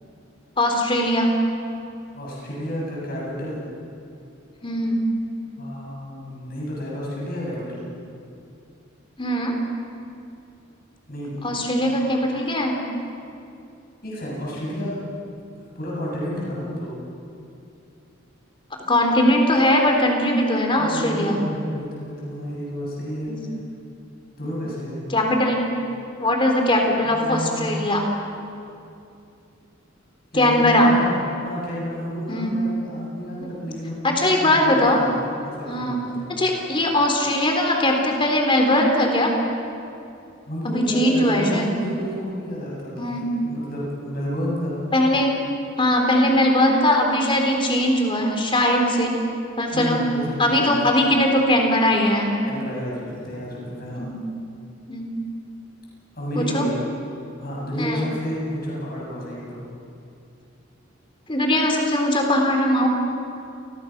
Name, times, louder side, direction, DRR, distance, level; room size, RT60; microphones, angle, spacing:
voice 1, 0.6-1.3 4.6-5.0 9.2-9.5 11.4-12.8 18.9-21.4 23.3-23.4 25.1-25.7 26.2-28.0 30.3-30.9 32.3-32.6 33.5-33.6 34.0-35.0 35.7-36.0 36.3-39.3 40.6-41.7 43.0-43.3 44.9-45.3 45.8-49.2 49.6-50.0 50.4-52.4 53.9-54.2 54.9-55.1 56.4-56.6 57.8-58.0 61.3-62.9, left 1 dB, 25° left, 2 dB, 3.7 m, -20 dB
voice 2, 2.1-3.6 5.6-7.9 11.1-11.7 14.0-15.0 15.8-17.0 20.8-23.3 24.4-25.0 27.0-27.7 30.3-31.2 31.4-35.1 35.4-36.2 40.5-44.8 49.7-50.9 52.4-54.0 56.1-56.8 57.4-59.6, equal, 50° left, -5 dB, 7.6 m, -30 dB
28.5 x 21.0 x 6.1 m, 2.7 s
head